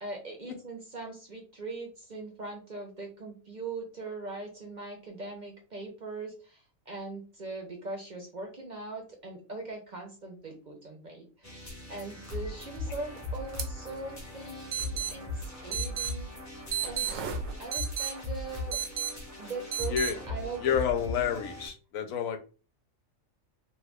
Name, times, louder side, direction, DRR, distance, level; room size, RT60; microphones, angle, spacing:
voice 1, 0.0-11.5 11.9-16.3 16.8-17.3 17.6-18.8 19.4-20.8, right 3 dB, 45° right, 1 dB, 0.6 m, -41 dB
sound 1, 11.4-21.7, left 2 dB, 15° left, 0.7 m, -39 dB
sound 2, 13.6-13.7 13.9-14.0 14.7-15.1 15.7-16.1 16.7-18.1 18.7-19.1 19.7-20.1, right 9 dB, 80° right, 1.0 m, -32 dB
voice 2, 20.6-22.4, left 8 dB, 85° left, 7 dB, 1.0 m, -29 dB
3.0 x 2.2 x 3.4 m, 0.36 s
omnidirectional pair, 1.4 m